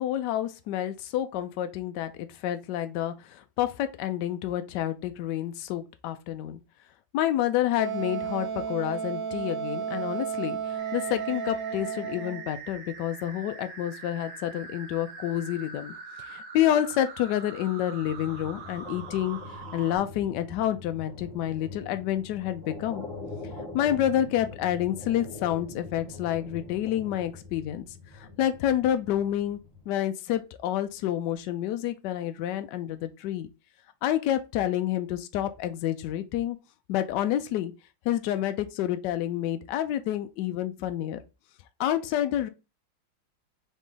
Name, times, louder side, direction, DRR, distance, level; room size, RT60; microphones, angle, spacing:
voice 1, 0.0-6.6 7.1-15.9 16.3-23.1 23.7-27.9 28.1-29.6 29.9-33.5 34.0-36.6 36.9-37.7 38.0-41.2 41.8-42.5, left 12 dB, 75° left, 1.0 m, -29 dB
Wind instrument woodwind instrument, 7.8-12.5, right 7 dB, 70° right, 1.5 m, -33 dB
sound 1, 10.8-20.0, right 4 dB, 50° right, 1.2 m, -43 dB
sound 2, 18.0-29.9, left 3 dB, 25° right, 1.3 m, -43 dB
4.0 x 3.1 x 3.6 m
omnidirectional pair, 2.2 m